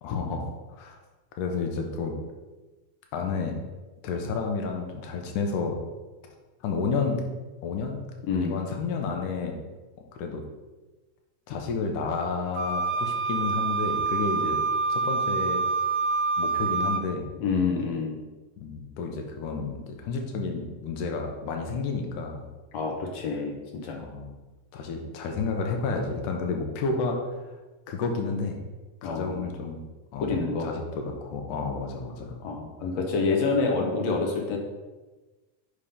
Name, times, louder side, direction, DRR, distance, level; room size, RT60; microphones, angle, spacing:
voice 1, 0.0-1.0 1.4-2.2 3.1-3.5 4.0-5.8 6.6-7.2 7.6-8.1 8.3-9.6 10.1-10.4 11.5-14.6 14.9-15.6 16.4-17.3 18.6-22.5 24.0-24.3 24.7-27.4 27.9-28.6 29.0-29.9 30.1-32.4, left 4 dB, 85° left, 3 dB, 2.4 m, -31 dB
Wind instrument woodwind instrument, 12.6-17.1, right 4 dB, 90° right, 1.4 m, -26 dB
voice 2, 17.4-18.2 22.7-24.1 29.0-29.5 30.2-30.7 32.4-34.6, left 4 dB, 65° left, 2 dB, 1.9 m, -27 dB
5.8 x 5.1 x 5.5 m, 1.2 s
omnidirectional pair, 3.6 m